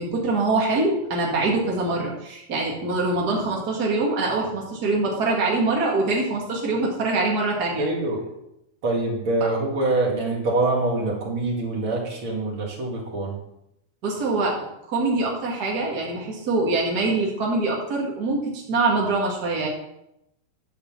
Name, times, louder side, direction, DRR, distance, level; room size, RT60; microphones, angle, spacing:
voice 1, 0.0-7.9 14.0-14.6 14.9-19.7, right 3 dB, 60° right, -2 dB, 1.0 m, -24 dB
voice 2, 7.8-8.3 8.8-13.4, right 2 dB, 40° right, -2 dB, 2.1 m, -25 dB
10.5 x 5.1 x 7.3 m, 0.83 s
omnidirectional pair, 4.8 m